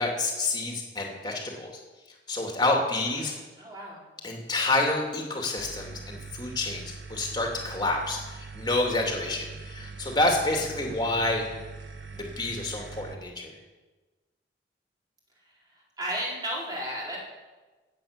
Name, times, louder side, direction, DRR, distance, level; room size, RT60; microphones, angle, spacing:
voice 1, 0.0-1.7 2.3-3.3 4.2-11.5 12.1-13.5, left 2 dB, 25° left, 1 dB, 2.7 m, -28 dB
voice 2, 3.2-4.0 16.0-17.2, equal, 25° right, -4 dB, 4.3 m, -33 dB
sound 1, 5.6-13.1, right 4 dB, 85° right, 1.2 m, -42 dB
17.0 x 8.7 x 6.8 m, 1.2 s
head